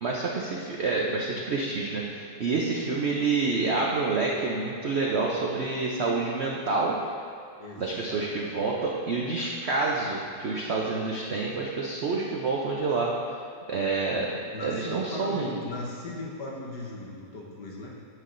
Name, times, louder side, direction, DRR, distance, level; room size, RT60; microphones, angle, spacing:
voice 1, 0.0-7.0 7.8-13.1 13.7-14.3 14.6-15.5, right 3 dB, 70° right, -2 dB, 0.6 m, -28 dB
voice 2, 7.6-8.6 14.5-17.9, left 2 dB, 70° left, -3 dB, 1.7 m, -38 dB
9.4 x 7.6 x 2.6 m, 2.3 s
omnidirectional pair, 1.9 m